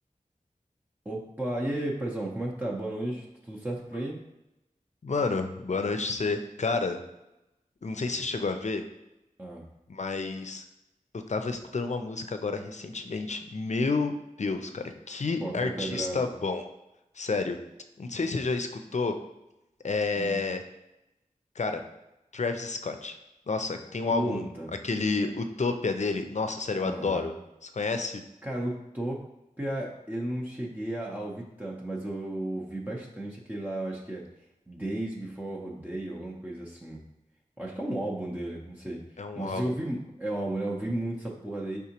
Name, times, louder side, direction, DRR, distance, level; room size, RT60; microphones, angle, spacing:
voice 1, 1.1-4.2 9.4-9.6 15.4-16.3 20.1-20.4 24.1-24.7 26.8-27.3 28.4-29.2 29.6-34.2 34.7-37.0 37.6-39.0 39.4-41.8, right 1 dB, 15° right, -5 dB, 0.6 m, -34 dB
voice 2, 5.0-7.0 7.8-8.8 9.9-10.6 11.3-16.6 17.2-17.6 18.0-19.1 19.8-20.6 21.6-21.8 22.3-23.1 23.5-24.5 24.8-27.3 27.6-28.2 39.2-39.7, left 3 dB, 55° left, 7 dB, 0.5 m, -30 dB
4.8 x 3.5 x 2.9 m, 0.93 s
wide cardioid pair, 45°, 14 cm